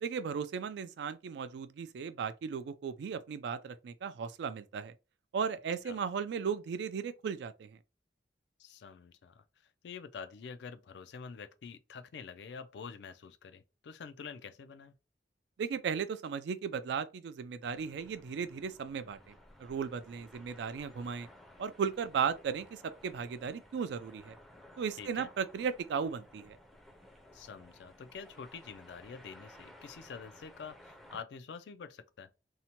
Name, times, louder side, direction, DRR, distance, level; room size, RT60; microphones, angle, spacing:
voice 1, 0.0-4.9 5.3-7.8 15.6-21.3 21.6-24.4 24.8-26.6, right 6 dB, 70° right, 0.3 m, -36 dB
voice 2, 8.6-9.4 9.8-15.0 25.0-25.3 27.3-32.3, left 6 dB, 70° left, 0.3 m, -47 dB
sound 1, 17.6-31.2, left 1 dB, ahead, 0.4 m, -57 dB
2.7 x 2.1 x 2.9 m
head